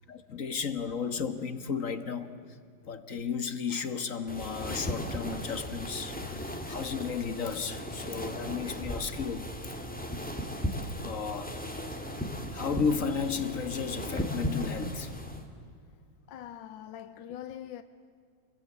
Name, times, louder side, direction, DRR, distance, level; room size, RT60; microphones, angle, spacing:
voice 1, 0.1-2.3 2.9-9.5 11.0-11.5 12.5-15.1, left 6 dB, 45° left, 1.6 m, -33 dB
sound 1, 4.3-15.5, equal, 5° left, 2.3 m, -36 dB
voice 2, 16.3-17.8, left 10 dB, 80° left, 1.6 m, -43 dB
28.5 x 21.5 x 9.6 m
omnidirectional pair, 2.0 m